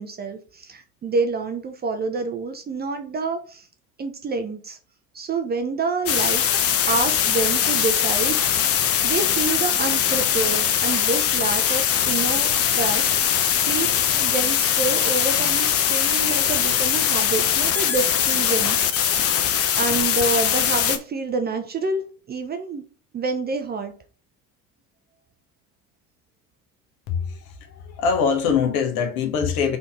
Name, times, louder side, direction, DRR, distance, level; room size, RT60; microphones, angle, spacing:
voice 1, 0.0-3.7 4.0-4.8 5.1-8.7 9.0-19.3 19.7-22.0 22.3-22.8 23.1-23.9, right 4 dB, 20° right, 0.5 m, -28 dB
sound 1, 6.1-21.0, left 9 dB, 30° left, 0.6 m, -21 dB
voice 2, 27.1-29.8, left 6 dB, 50° left, 1.1 m, -23 dB
4.1 x 2.8 x 4.0 m
figure-of-eight pair, 70°, 45 cm